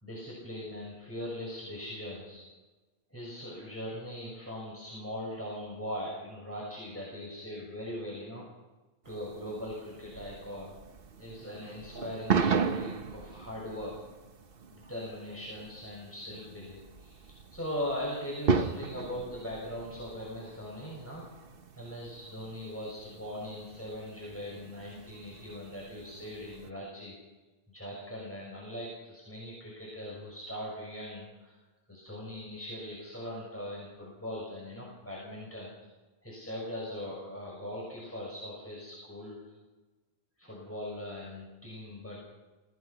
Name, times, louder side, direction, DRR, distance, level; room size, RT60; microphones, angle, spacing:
voice 1, 0.0-2.4 3.1-8.4 9.0-10.7 11.2-14.0 14.7-21.3 21.8-27.1 27.7-31.5 31.9-35.7 36.2-39.4 40.4-42.3, left 1 dB, 15° left, -5 dB, 6.3 m, -40 dB
sound 1, 9.0-26.7, right 5 dB, 65° right, 1.2 m, -37 dB
25.5 x 17.5 x 5.9 m, 1.2 s
omnidirectional pair, 1.0 m